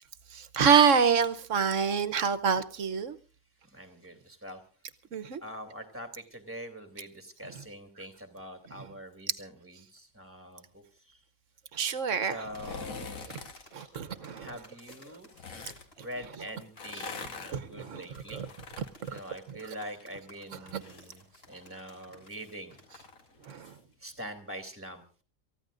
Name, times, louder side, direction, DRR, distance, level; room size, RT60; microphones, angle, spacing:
voice 1, 0.3-3.2 5.1-5.4 11.7-12.3 13.7-14.5 17.5-18.0 18.3-18.5 19.0-19.1 20.7-20.8 23.5-23.7, right 6 dB, 65° right, 1.2 m, -26 dB
voice 2, 3.6-4.6 5.4-11.2 12.2-13.3 14.4-15.3 16.0-18.4 19.1-22.8 24.0-25.2, equal, 10° right, 2.5 m, -44 dB
sound 1, 12.4-13.6 14.8-15.9 16.6-20.1 20.4-23.8 24.1-24.2, left 5 dB, 85° left, 1.8 m, -45 dB
sound 2, 12.5-23.6, equal, 45° left, 7.0 m, -56 dB
28.0 x 14.5 x 2.5 m
omnidirectional pair, 1.4 m